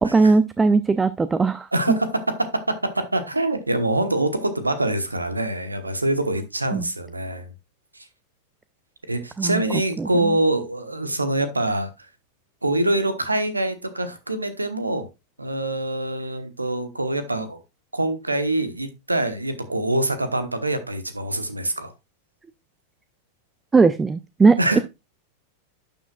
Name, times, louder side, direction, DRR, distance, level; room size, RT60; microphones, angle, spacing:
voice 1, 0.0-2.0 6.7-6.9 9.4-9.6 10.0-10.4 23.7-24.8, right 4 dB, 15° right, 0.4 m, -19 dB
voice 2, 1.7-2.1 2.7-7.5 7.9-8.0 9.1-11.9 12.6-15.1 15.4-17.6 17.9-21.9 24.6-24.8, right 1 dB, 80° right, 1.1 m, -25 dB
11.5 x 7.0 x 2.3 m
figure-of-eight pair, 90°, 0 cm